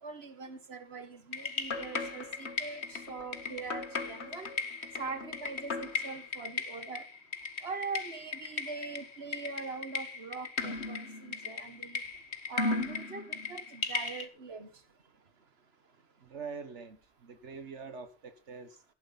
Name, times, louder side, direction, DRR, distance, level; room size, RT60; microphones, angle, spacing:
voice 1, 0.0-4.5 5.0-7.1 7.6-12.0 12.5-14.7, right 4 dB, 60° right, 10 dB, 2.0 m, -42 dB
sound 1, 1.3-14.3, left 4 dB, 70° left, 1.9 m, -37 dB
voice 2, 16.2-18.9, right 5 dB, 80° right, 9 dB, 1.7 m, -45 dB
15.5 x 11.0 x 4.2 m, 0.32 s
omnidirectional pair, 1.2 m